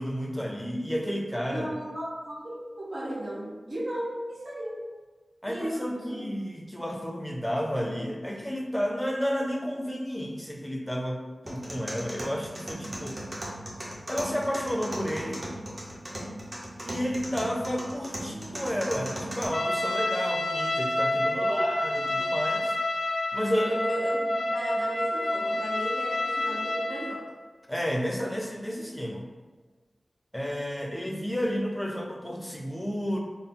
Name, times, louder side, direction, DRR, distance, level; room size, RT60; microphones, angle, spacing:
voice 1, 0.0-1.7 5.4-13.2 14.1-15.4 16.8-22.7 23.3-23.7 27.7-29.3 30.3-33.2, equal, 10° left, 1 dB, 0.5 m, -31 dB
voice 2, 1.5-4.8 5.5-6.3 21.3-21.6 23.4-27.2, equal, 80° right, -7 dB, 1.1 m, -35 dB
sound 1, 11.5-19.5, right 1 dB, 35° right, 0.8 m, -38 dB
Trumpet, 19.5-27.2, left 1 dB, 65° left, 0.4 m, -28 dB
3.8 x 2.0 x 3.7 m, 1.3 s
wide cardioid pair, 80°, 0 cm